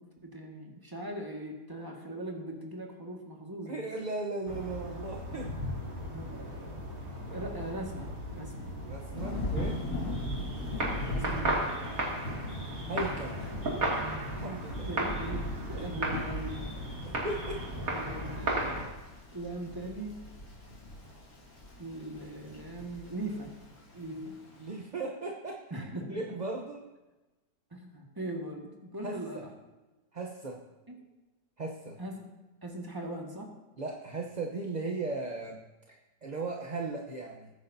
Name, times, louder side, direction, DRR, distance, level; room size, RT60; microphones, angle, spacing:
voice 1, 0.0-3.8 6.1-6.8 7.3-8.7 11.1-11.6 13.4-13.6 14.8-16.7 17.8-19.0 19.3-20.2 21.8-23.5 23.9-24.4 25.7-26.2 27.7-29.5 30.9-31.0 32.0-32.3 32.6-33.5, right 1 dB, 15° right, 0 dB, 1.8 m, -40 dB
voice 2, 3.7-5.5 8.9-9.8 12.9-13.5 14.3-14.9 15.8-15.9 17.0-17.7 24.6-26.9 29.0-29.4 30.1-30.6 31.6-32.0 33.8-35.6 35.9-37.5, right 3 dB, 35° right, 0 dB, 0.8 m, -37 dB
sound 1, 4.5-18.8, right 1 dB, 55° right, 2.8 m, -35 dB
Thunder / Rain, 9.1-24.7, left 1 dB, 45° left, 3.1 m, -40 dB
21.5 x 9.5 x 2.8 m, 1.1 s
omnidirectional pair, 1.8 m